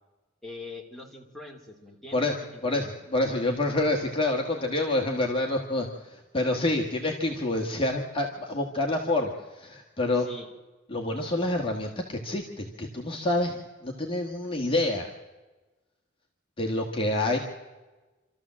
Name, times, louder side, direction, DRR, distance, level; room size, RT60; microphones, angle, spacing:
voice 1, 0.4-2.6 10.2-10.5, left 2 dB, ahead, -2 dB, 3.2 m, -43 dB
voice 2, 2.6-10.3 10.9-15.1 16.6-17.4, left 2 dB, 30° left, 0 dB, 1.7 m, -27 dB
26.5 x 13.5 x 7.5 m, 1.2 s
head